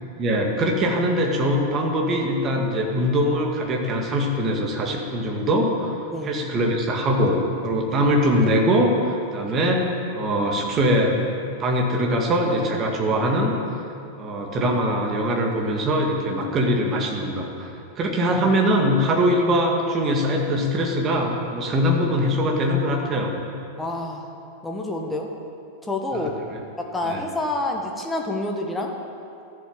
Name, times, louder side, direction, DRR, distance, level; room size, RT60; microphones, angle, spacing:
voice 1, 0.2-6.0 6.2-13.6 14.2-23.3 26.1-26.2 26.5-26.6 27.0-27.2, equal, 30° right, 1 dB, 2.2 m, -22 dB
voice 2, 23.8-24.3 24.6-25.3 25.8-26.3 26.8-28.9, left 2 dB, 10° left, 1 dB, 1.6 m, -28 dB
13.0 x 7.9 x 9.0 m, 2.6 s
figure-of-eight pair, 90°, 0 cm